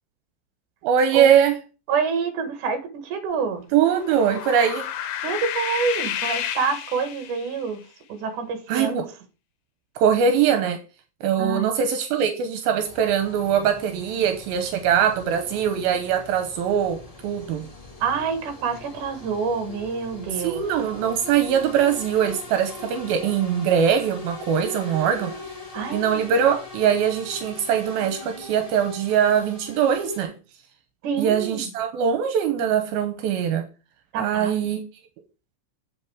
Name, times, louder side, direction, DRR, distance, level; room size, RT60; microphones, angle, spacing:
voice 1, 0.8-1.5 3.7-4.9 8.7-9.1 10.0-10.8 11.2-17.7 20.4-25.3 25.9-30.3 31.2-33.7 34.2-34.8, right 8 dB, 85° right, 2.7 m, -22 dB
voice 2, 1.9-3.7 5.2-7.8 8.1-9.0 11.4-11.7 18.0-20.6 24.6-25.4 25.7-26.3 31.0-31.7 34.1-34.6, right 5 dB, 65° right, 2.7 m, -27 dB
sound 1, 3.9-7.6, left 10 dB, 75° left, 2.4 m, -31 dB
sound 2, 12.8-30.2, left 2 dB, 55° left, 0.4 m, -41 dB
8.3 x 5.4 x 4.8 m
omnidirectional pair, 4.3 m